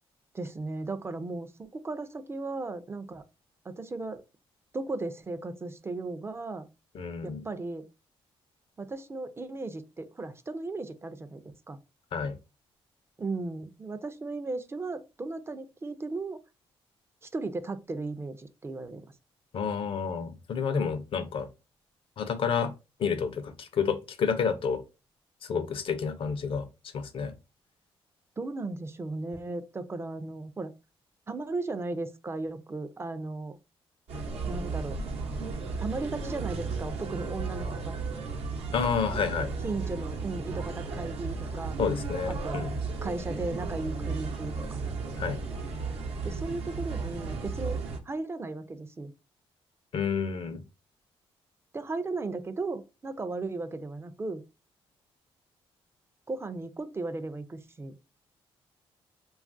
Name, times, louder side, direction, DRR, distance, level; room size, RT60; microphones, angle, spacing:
voice 1, 0.3-3.2 3.7-4.2 4.7-6.7 7.2-7.8 8.8-11.4 11.7-11.8 13.2-16.4 17.2-19.0 28.4-30.7 31.3-33.6 34.5-35.0 35.8-37.9 39.6-41.8 42.3-42.6 43.0-44.8 46.2-47.8 48.1-49.1 51.7-54.4 56.3-57.9, right 3 dB, 25° right, 0.4 m, -36 dB
voice 2, 6.9-7.4 12.1-12.3 19.5-21.5 22.2-22.7 23.0-24.8 25.4-26.7 26.9-27.3 38.7-39.5 41.8-42.7 45.2-45.4 49.9-50.6, left 6 dB, 60° left, 0.5 m, -29 dB
sound 1, 34.1-48.0, right 4 dB, 75° right, 0.7 m, -34 dB
3.0 x 2.3 x 2.5 m
cardioid pair, 80°, 10 cm